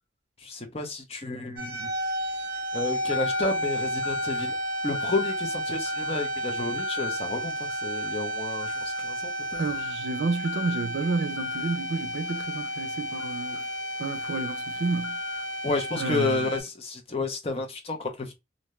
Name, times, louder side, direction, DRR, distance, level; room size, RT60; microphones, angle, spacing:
voice 1, 0.4-2.0 2.7-4.6 4.8-9.6 15.6-18.3, left 3 dB, 35° left, 0.6 m, -31 dB
sound 1, 1.6-16.6, equal, 50° right, 0.8 m, -32 dB
sound 2, 3.1-3.6 4.0-4.5 4.9-5.4 5.9-6.3 6.8-7.2 7.7-8.1 8.6-9.1 9.5-10.0 10.4-10.9 11.4-11.8 12.3-16.4, left 9 dB, 75° left, 0.5 m, -39 dB
voice 2, 9.6-13.7 14.0-15.2 16.0-16.5, right 4 dB, 75° right, 0.4 m, -30 dB
2.6 x 2.2 x 3.0 m
head